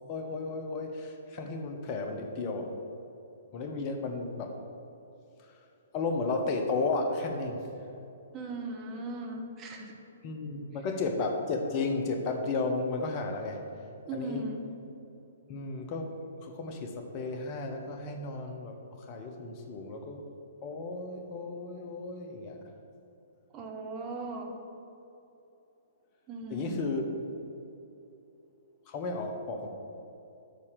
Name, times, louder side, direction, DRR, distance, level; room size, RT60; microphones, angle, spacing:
voice 1, 0.1-2.8 3.5-4.6 5.4-5.5 5.9-7.7 10.2-13.7 14.1-14.4 15.5-20.3 20.6-22.6 26.5-27.0 28.9-29.7, left 3 dB, 35° left, 4 dB, 0.8 m, -33 dB
voice 2, 8.3-9.9 14.0-14.8 23.5-24.5 26.3-26.9, right 2 dB, 25° right, 1 dB, 1.0 m, -38 dB
6.7 x 4.2 x 6.6 m, 2.9 s
figure-of-eight pair, 120°, 0 cm